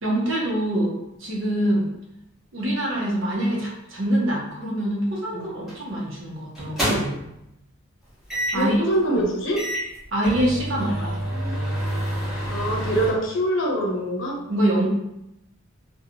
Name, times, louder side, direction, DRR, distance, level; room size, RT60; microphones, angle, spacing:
voice 1, 0.0-1.9 2.5-7.1 8.5-8.8 9.1-9.2 10.1-11.2 14.5-14.9, right 1 dB, 75° right, -3 dB, 0.8 m, -24 dB
sound 1, 5.7-5.9 6.5-7.3 8.3-8.7 9.2-9.3 9.6-13.1, equal, ahead, 0.9 m, -28 dB
voice 2, 8.5-9.7 11.0-11.1 12.5-14.4, right 1 dB, 65° left, -1 dB, 0.6 m, -24 dB
2.6 x 2.2 x 2.7 m, 0.84 s
head